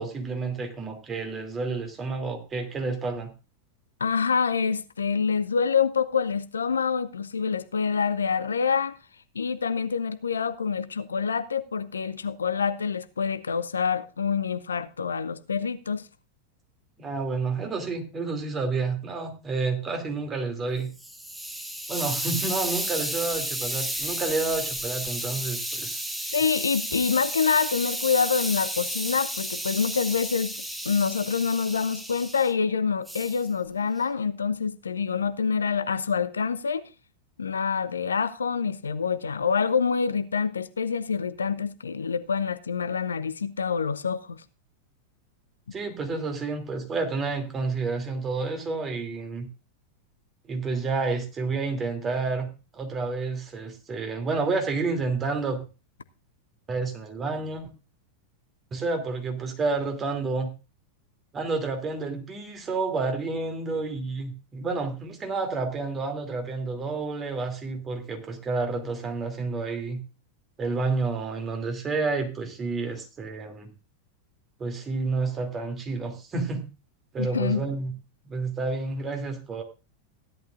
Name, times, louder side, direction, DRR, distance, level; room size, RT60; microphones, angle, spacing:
voice 1, 0.0-3.3 17.0-20.9 21.9-26.0 45.7-49.5 50.4-55.7 56.7-57.6 58.7-60.5 61.3-70.0 70.6-73.7 74.6-76.6 77.1-77.9 78.2-79.6, right 3 dB, 20° right, 2.8 m, -30 dB
voice 2, 4.0-8.9 9.3-16.1 26.3-30.5 30.8-36.8 37.4-44.4 77.2-77.6, left 6 dB, 70° left, 0.7 m, -26 dB
Hiss, 20.8-32.5 33.1-33.4, right 1 dB, 5° right, 1.4 m, -32 dB
16.0 x 11.5 x 2.5 m
figure-of-eight pair, 90°, 0 cm